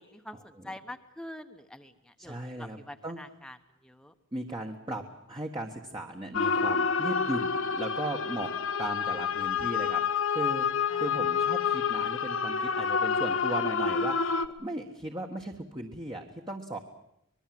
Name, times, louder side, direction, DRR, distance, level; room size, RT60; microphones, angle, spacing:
voice 1, 0.0-3.6 3.8-4.1 10.9-11.3, left 1 dB, 5° left, 7 dB, 1.1 m, -46 dB
voice 2, 2.2-2.8 3.0-3.2 4.3-8.5 8.8-10.7 11.0-16.8, right 1 dB, 20° right, 2 dB, 1.4 m, -37 dB
sound 1, 6.3-14.5, left 6 dB, 70° left, 1.1 m, -28 dB
25.0 x 21.0 x 7.8 m, 0.77 s
head